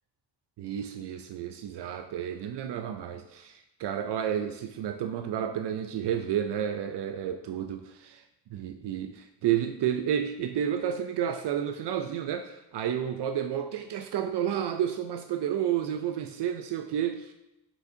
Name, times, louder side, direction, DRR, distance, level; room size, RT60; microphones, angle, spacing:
voice 1, 0.6-8.2 8.5-17.3, right 9 dB, 75° right, 7 dB, 0.5 m, -31 dB
7.0 x 6.9 x 2.7 m, 0.92 s
wide cardioid pair, 115°, 41 cm